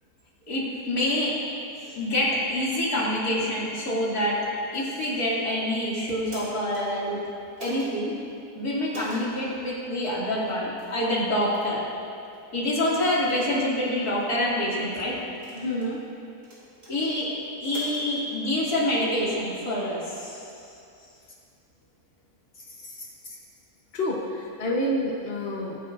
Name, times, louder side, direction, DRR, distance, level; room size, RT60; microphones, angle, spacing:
voice 1, 0.5-1.3 1.8-4.4 4.7-7.2 7.6-8.1 8.5-11.8 12.5-15.2 16.9-17.3 17.6-20.4 23.0-23.3, left 1 dB, 70° left, -6 dB, 3.0 m, -26 dB
sound 1, 4.9-5.4 6.1-6.8 7.6-7.9 8.9-9.2 10.1-10.2 10.8-11.0 11.5-11.7 12.3-12.4 13.0-13.4 14.1-14.5 15.3-15.9 16.4-16.9 17.6-18.1, right 1 dB, 75° right, 3.6 m, -44 dB
voice 2, 15.5-16.0 23.9-25.8, left 1 dB, 40° left, -2 dB, 1.2 m, -28 dB
20.5 x 9.9 x 2.6 m, 2.5 s
omnidirectional pair, 1.7 m